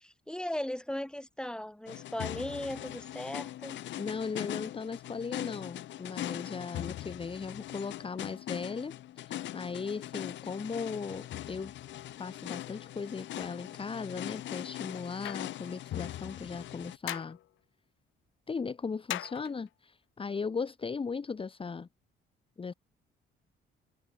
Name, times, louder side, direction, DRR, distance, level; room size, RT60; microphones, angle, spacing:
voice 1, 0.0-3.8, left 1 dB, 5° left, 2.7 m, -37 dB
sound 1, 1.9-17.0, left 13 dB, 65° left, 0.6 m, -41 dB
voice 2, 3.9-11.7 12.2-17.4 18.5-21.9 22.6-22.7, left 5 dB, 25° left, 1.0 m, -37 dB
sound 2, 15.2-15.6 17.1-17.4 19.1-19.7, left 15 dB, 85° left, 1.3 m, -38 dB
cardioid pair, 90°, 20 cm